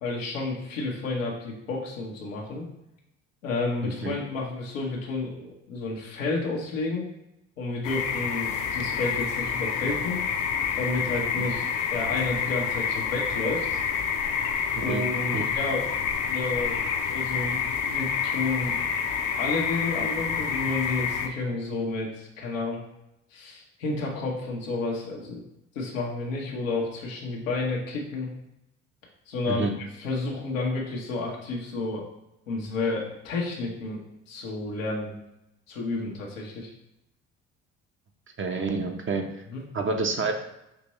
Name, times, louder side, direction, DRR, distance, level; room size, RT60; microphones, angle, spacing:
voice 1, 0.0-2.7 3.4-7.0 7.6-10.2 10.7-13.8 14.7-15.9 16.3-16.8 17.1-18.8 19.4-22.8 23.3-25.4 25.7-28.3 29.3-29.7 30.0-32.0 32.5-34.0 34.3-35.1 35.7-36.7 39.5-39.6, left 3 dB, 90° left, -2 dB, 1.1 m, -31 dB
voice 2, 3.8-4.1 14.8-15.1 15.3-15.5 29.5-29.7 38.4-39.3 39.7-40.3, right 3 dB, 30° right, 4 dB, 0.8 m, -28 dB
sound 1, 7.8-21.3, left 7 dB, 50° left, 0.7 m, -28 dB
5.9 x 3.0 x 3.0 m, 0.86 s
hypercardioid pair, 55°, 38 cm